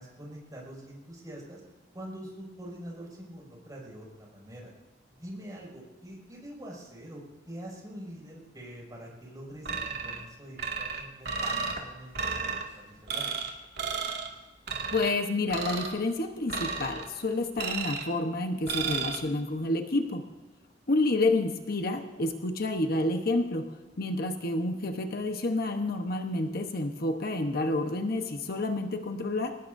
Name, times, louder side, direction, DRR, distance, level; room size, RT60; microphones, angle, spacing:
voice 1, 0.0-1.6 1.9-4.7 5.1-13.3, right 1 dB, 20° right, -3 dB, 6.1 m, -45 dB
sound 1, 9.7-10.2 10.6-11.8 12.1-12.6 13.1-13.5 13.8-14.3 14.7-15.1 15.5-16.0 16.5-17.1 17.6-18.1 18.7-19.2, right 5 dB, 65° right, 2.3 m, -33 dB
voice 2, 14.9-20.2 20.9-29.6, left 2 dB, 55° left, 5 dB, 1.1 m, -29 dB
24.0 x 19.0 x 2.7 m, 1.2 s
head